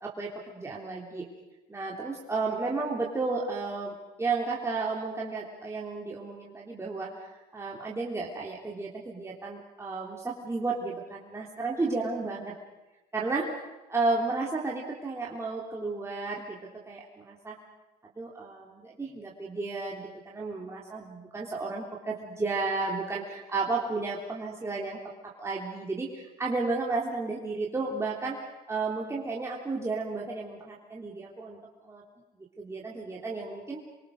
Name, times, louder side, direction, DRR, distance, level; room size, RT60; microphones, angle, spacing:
voice 1, 0.0-1.2 1.7-12.5 13.1-13.5 13.9-16.6 16.9-17.6 18.2-25.0 25.4-28.4 28.7-31.6 31.8-32.0 32.6-33.8, right 3 dB, 15° right, -3 dB, 3.4 m, -33 dB
28.5 x 23.5 x 6.6 m, 1.1 s
cardioid pair, 110°, 17 cm